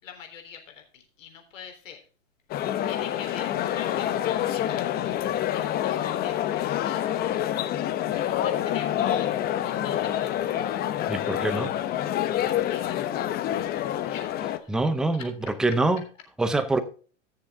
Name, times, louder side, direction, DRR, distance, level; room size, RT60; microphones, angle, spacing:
voice 1, 0.0-2.0 2.9-5.2 5.4-7.2 8.2-11.1 12.4-15.6 16.5-16.6, left 7 dB, 85° left, 3.6 m, -45 dB
sound 1, 2.5-14.6, left 11 dB, 25° left, 0.8 m, -27 dB
voice 2, 11.1-11.7 14.7-15.3 15.6-16.0 16.4-16.8, right 2 dB, ahead, 0.5 m, -24 dB
15.5 x 6.9 x 3.5 m
hypercardioid pair, 135°, 38 cm